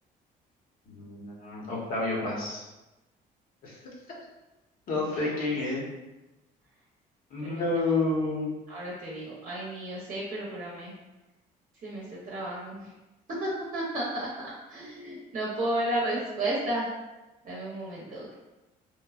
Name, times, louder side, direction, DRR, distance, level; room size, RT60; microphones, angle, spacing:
voice 1, 0.9-2.6 3.6-3.8 4.9-5.8 7.3-8.5, left 2 dB, 55° left, -4 dB, 0.9 m, -29 dB
voice 2, 8.7-10.9 11.8-12.9 13.4-14.3 14.7-16.9 17.4-18.3, right 1 dB, 50° right, -5 dB, 0.7 m, -33 dB
3.0 x 2.2 x 2.3 m, 1.0 s
cardioid pair, 110°, 17 cm